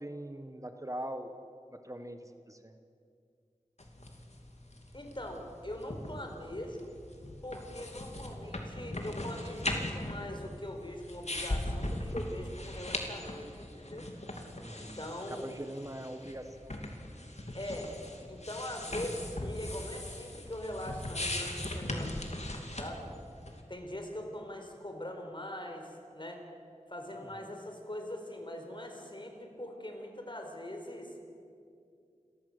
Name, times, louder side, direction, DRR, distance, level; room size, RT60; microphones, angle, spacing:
voice 1, 0.0-1.4 1.7-2.7 14.6-15.0 15.3-16.7, right 1 dB, 25° right, 7 dB, 1.2 m, -42 dB
sound 1, 3.8-23.6, left 1 dB, 60° left, 2.8 m, -40 dB
voice 2, 4.9-6.9 7.4-14.1 14.8-15.6 17.5-17.9 18.3-22.2 22.7-23.1 23.7-26.4 26.9-31.1, left 1 dB, 40° left, 3 dB, 4.3 m, -42 dB
29.5 x 14.0 x 8.0 m, 2.4 s
wide cardioid pair, 50°, 13 cm